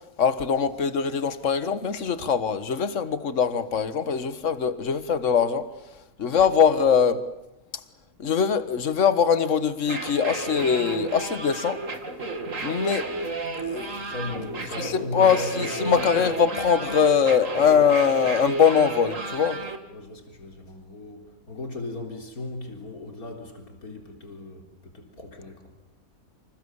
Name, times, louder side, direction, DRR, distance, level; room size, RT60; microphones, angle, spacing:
voice 1, 0.2-5.7 6.2-7.2 8.2-11.8 12.6-13.1 13.6-14.0 14.8-19.6, left 7 dB, 55° left, 1.8 m, -22 dB
sound 1, 9.8-19.8, right 3 dB, 55° right, 2.7 m, -33 dB
voice 2, 14.0-16.2 19.9-25.7, left 2 dB, 70° left, 4.3 m, -37 dB
29.0 x 28.0 x 7.2 m
omnidirectional pair, 1.6 m